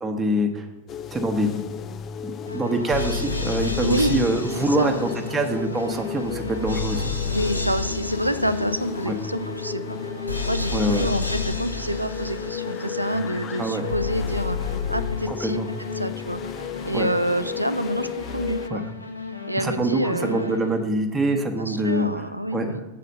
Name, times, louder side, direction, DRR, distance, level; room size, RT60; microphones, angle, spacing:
voice 1, 0.0-0.7 1.1-1.6 2.2-7.1 9.1-9.2 10.7-11.1 13.6-13.9 15.3-15.7 16.9-17.1 18.7-18.8 19.6-22.1 22.5-22.8, right 1 dB, 15° right, 3 dB, 0.9 m, -25 dB
sound 1, 0.9-18.7, left 9 dB, 30° left, 0.4 m, -35 dB
sound 2, 2.5-20.9, left 4 dB, 85° left, 0.7 m, -31 dB
voice 2, 3.8-4.2 4.8-4.9 7.3-10.0 10.2-15.6 16.0-16.4 16.8-18.1 18.3-18.8 19.5-20.7 21.6-22.9, right 1 dB, 90° right, 13 dB, 0.4 m, -27 dB
7.4 x 4.2 x 6.8 m, 1.2 s
figure-of-eight pair, 90°, 0 cm